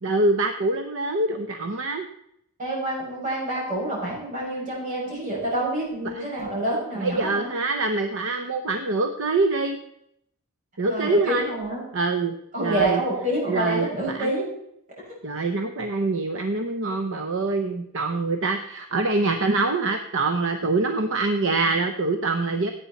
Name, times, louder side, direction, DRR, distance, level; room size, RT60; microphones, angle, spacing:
voice 1, 0.0-2.1 6.1-6.3 7.0-9.8 10.8-11.5 11.9-13.0 13.5-14.3 15.2-22.7, right 3 dB, 60° right, 6 dB, 0.8 m, -25 dB
voice 2, 2.6-7.5 10.9-11.8 12.5-14.5, right 1 dB, 35° right, -5 dB, 6.5 m, -27 dB
17.0 x 8.6 x 4.2 m, 0.75 s
head